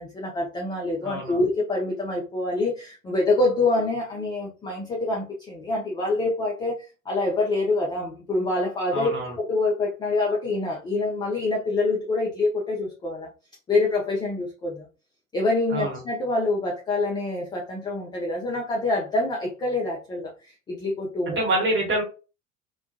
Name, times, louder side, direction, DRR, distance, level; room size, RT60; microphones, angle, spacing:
voice 1, 0.0-13.3 13.7-14.9 15.3-21.4, left 2 dB, 10° left, -2 dB, 0.3 m, -26 dB
voice 2, 1.0-1.4 8.9-9.4 15.7-16.0 21.4-22.0, right 1 dB, 30° right, 0 dB, 1.2 m, -26 dB
2.2 x 2.1 x 2.5 m, 0.33 s
figure-of-eight pair, 70°, 40 cm